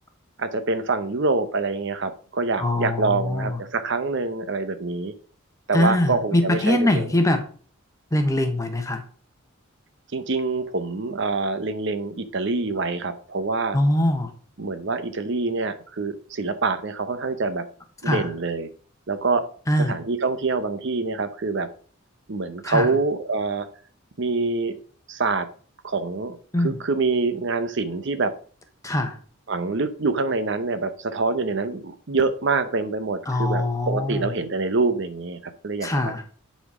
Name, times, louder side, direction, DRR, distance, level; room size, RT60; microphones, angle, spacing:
voice 1, 0.4-5.1 5.7-7.1 10.1-13.8 14.6-17.6 18.0-18.7 19.1-19.4 19.9-21.7 22.3-23.7 24.2-24.8 25.1-25.5 25.8-26.4 26.6-28.3 29.5-36.1, right 3 dB, 60° right, 10 dB, 0.8 m, -25 dB
voice 2, 2.6-3.6 5.7-7.4 8.1-9.0 13.7-14.3 18.0-18.3 19.7-20.0 22.6-22.9 26.5-26.7 28.8-29.2 33.3-34.3 35.8-36.2, left 1 dB, 15° left, 6 dB, 1.1 m, -22 dB
10.0 x 4.3 x 4.9 m, 0.44 s
head